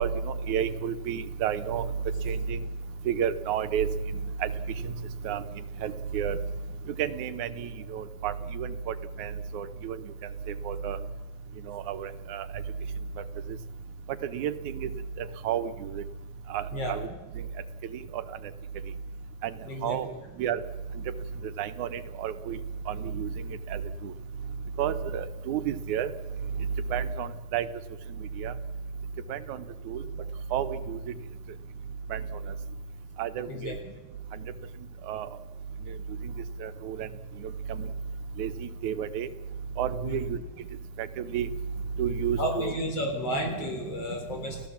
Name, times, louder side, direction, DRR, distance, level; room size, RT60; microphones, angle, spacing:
voice 1, 0.0-1.9 2.3-2.6 3.1-3.9 4.4-4.5 4.8-4.9 5.2-5.4 5.8-6.4 7.0-10.0 10.6-11.0 11.7-12.5 14.2-14.9 15.4-16.0 16.5-17.1 18.1-18.2 19.4-19.5 19.8-20.1 20.4-20.6 21.6-22.6 22.9-23.3 23.7-24.1 24.8-26.1 26.9-27.7 28.4-28.5 29.3-30.0 30.5-31.0 32.1-32.2 33.2-33.7 35.1-35.3 36.6-37.1 37.4-37.9 38.4-39.3 39.8-40.4 41.0-41.5 42.0-42.7 43.0-43.1 43.6-43.8, right 8 dB, 90° right, 10 dB, 2.4 m, -31 dB
voice 2, 19.6-20.0 33.5-33.7 40.0-40.3 42.4-44.6, equal, 55° left, 3 dB, 5.1 m, -32 dB
29.5 x 15.5 x 7.2 m, 1.2 s
omnidirectional pair, 3.3 m